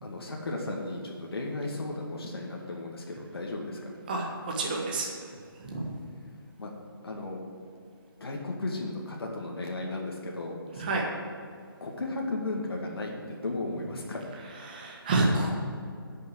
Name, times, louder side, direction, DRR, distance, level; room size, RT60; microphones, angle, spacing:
voice 1, 0.0-4.0 6.6-6.7 7.0-7.4 8.2-11.0 11.8-14.2, left 2 dB, 85° left, -1 dB, 2.0 m, -35 dB
voice 2, 4.1-5.1 5.6-5.9 10.8-11.0 14.7-15.5, right 2 dB, 20° right, -1 dB, 1.4 m, -28 dB
10.5 x 6.5 x 7.8 m, 2.3 s
hypercardioid pair, 175°, 12 cm